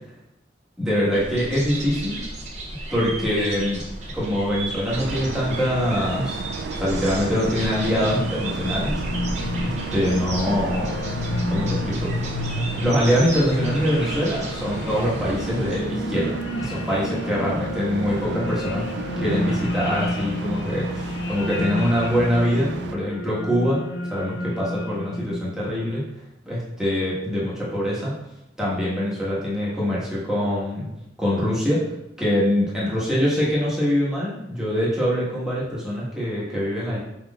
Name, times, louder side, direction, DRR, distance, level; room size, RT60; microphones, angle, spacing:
voice 1, 0.8-2.2 2.9-3.8 4.1-6.4 6.8-9.0 9.6-11.0 11.5-12.1 12.8-18.8 19.2-23.8 24.1-26.0 26.4-28.1 28.6-30.9 31.2-31.8 32.2-37.0, equal, 5° right, -8 dB, 1.3 m, -24 dB
sound 1, 1.1-15.8, right 2 dB, 40° right, 0.8 m, -34 dB
sound 2, 4.9-23.0, right 4 dB, 75° right, 0.3 m, -33 dB
sound 3, 7.7-25.6, left 2 dB, 75° left, 0.4 m, -30 dB
5.0 x 3.7 x 2.3 m, 0.85 s
head